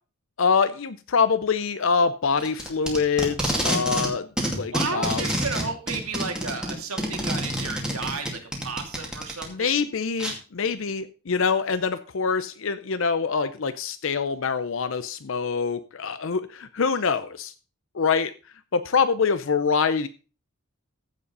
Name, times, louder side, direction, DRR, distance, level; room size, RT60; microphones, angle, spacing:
voice 1, 0.4-5.2 9.5-17.5 17.9-18.3 18.7-20.1, left 5 dB, 60° left, 12 dB, 0.6 m, -25 dB
Packing tape duct tape, 2.4-4.1 4.4-9.4 10.2-10.3, equal, 5° right, 2.3 m, -27 dB
voice 2, 4.7-9.8, right 4 dB, 75° right, 4 dB, 2.4 m, -33 dB
15.0 x 5.2 x 5.3 m, 0.36 s
head